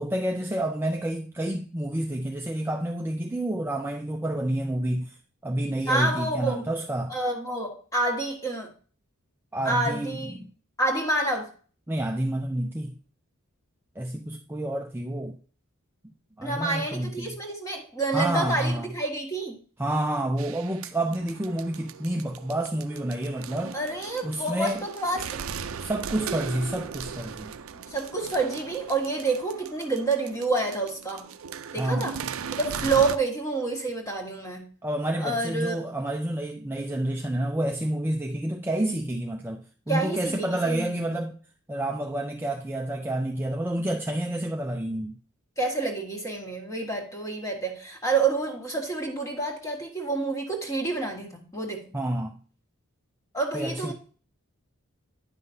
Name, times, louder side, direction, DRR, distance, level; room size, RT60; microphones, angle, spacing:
voice 1, 0.0-5.2 5.4-7.1 9.5-10.5 11.9-12.9 14.0-15.4 16.4-17.3 18.1-18.9 19.8-23.8 24.2-24.9 25.8-27.5 31.8-32.1 34.8-41.3 41.7-45.1 51.9-52.4 53.5-53.9, right 1 dB, 10° right, 0.4 m, -29 dB
voice 2, 5.9-6.7 7.1-8.7 9.6-10.3 10.8-11.5 16.4-19.6 23.7-25.4 27.9-31.3 31.7-32.2 32.5-34.7 35.2-35.8 39.9-40.9 45.6-51.8 53.3-53.9, right 3 dB, 15° left, 1.4 m, -28 dB
sound 1, 20.4-33.2, right 6 dB, 70° right, 0.5 m, -38 dB
9.7 x 5.6 x 2.7 m
head